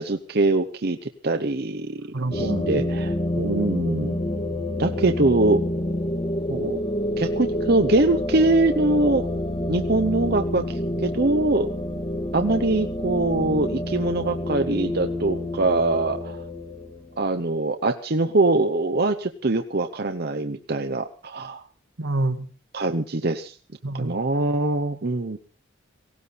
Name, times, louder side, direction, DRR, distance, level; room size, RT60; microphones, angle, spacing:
voice 1, 0.0-2.1 2.3-3.1 3.4-4.2 4.8-5.6 6.5-6.8 7.2-9.2 9.7-10.6 11.0-11.7 12.3-16.4 17.2-21.6 22.7-23.5 23.9-25.4, right 2 dB, 50° right, 0.9 m, -23 dB
voice 2, 2.1-2.9 3.3-3.6 22.0-22.5 23.8-24.1, right 2 dB, 90° right, 2.0 m, -27 dB
sound 1, 2.3-17.3, left 1 dB, 30° left, 1.6 m, -28 dB
18.0 x 17.5 x 4.2 m
head